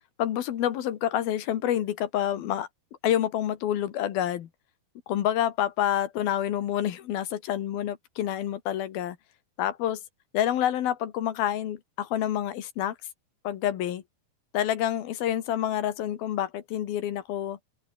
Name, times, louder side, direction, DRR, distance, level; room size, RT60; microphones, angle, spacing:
voice 1, 0.2-2.7 3.0-4.5 5.1-9.2 9.6-10.0 10.3-13.0 13.5-14.0 14.5-17.6, left 11 dB, 75° left, 3.5 m, -28 dB
omnidirectional pair, 4.3 m